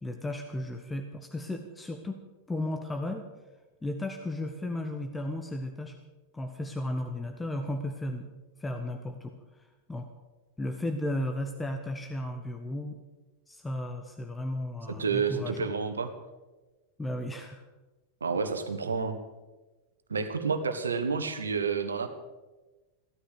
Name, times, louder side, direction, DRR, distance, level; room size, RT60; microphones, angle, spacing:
voice 1, 0.0-2.2 2.5-3.2 3.8-6.0 6.3-8.3 8.6-10.1 10.6-13.0 13.5-15.7 17.0-17.6, left 1 dB, 10° left, 5 dB, 1.3 m, -34 dB
voice 2, 14.9-16.1 18.2-19.2 20.1-22.1, right 5 dB, 75° right, 8 dB, 1.5 m, -29 dB
16.0 x 13.5 x 6.6 m, 1.2 s
figure-of-eight pair, 90°, 0 cm